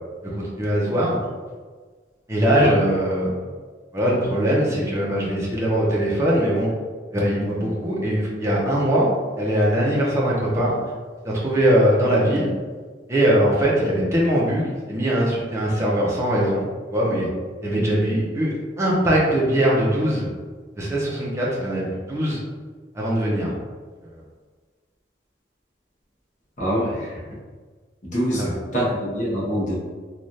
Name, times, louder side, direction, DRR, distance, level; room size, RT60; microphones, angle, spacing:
voice 1, 0.3-1.2 2.3-3.4 3.9-6.7 7.1-9.1 9.4-10.7 11.2-12.5 13.1-17.3 17.6-20.3 20.8-22.4 22.9-23.5 28.4-28.5, equal, 15° right, -5 dB, 0.6 m, -21 dB
voice 2, 26.6-27.2 28.0-29.8, equal, 45° left, -7 dB, 1.0 m, -25 dB
3.2 x 2.4 x 2.7 m, 1.4 s
head